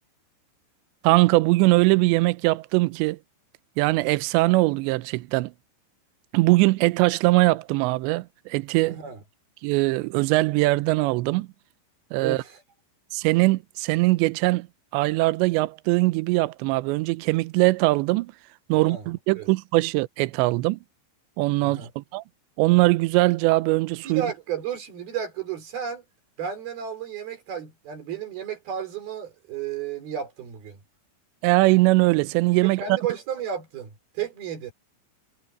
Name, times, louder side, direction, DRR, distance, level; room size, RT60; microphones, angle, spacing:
voice 1, 1.0-3.2 3.8-5.5 6.3-9.0 9.6-11.5 12.1-12.4 13.1-14.7 14.9-18.3 18.7-20.8 21.4-22.2 22.6-24.2 31.4-32.8, right 21 dB, 85° right, 2.7 m, -21 dB
voice 2, 8.9-9.2 12.2-12.6 18.7-19.1 19.4-19.5 21.6-21.9 24.0-26.0 26.4-30.8 32.6-34.7, right 8 dB, 55° right, 6.0 m, -33 dB
omnidirectional pair, 5.6 m